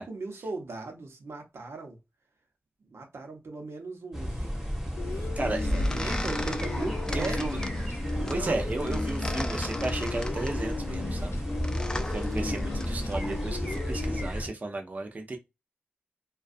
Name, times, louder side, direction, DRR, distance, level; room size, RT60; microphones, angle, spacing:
voice 1, 0.0-2.0 2.9-4.3 5.0-5.1 5.7-7.4 8.1-8.5, right 3 dB, 85° right, 0.7 m, -38 dB
sound 1, 4.1-14.5, equal, 10° right, 0.8 m, -33 dB
sound 2, 5.0-14.3, left 4 dB, 75° left, 0.5 m, -37 dB
sound 3, 5.2-13.8, left 1 dB, 15° left, 0.3 m, -36 dB
voice 2, 5.4-5.7 6.0-6.2 7.1-7.6 8.3-11.4 12.0-15.4, right 2 dB, 40° right, 0.5 m, -34 dB
2.4 x 2.2 x 2.5 m
wide cardioid pair, 105°, 4 cm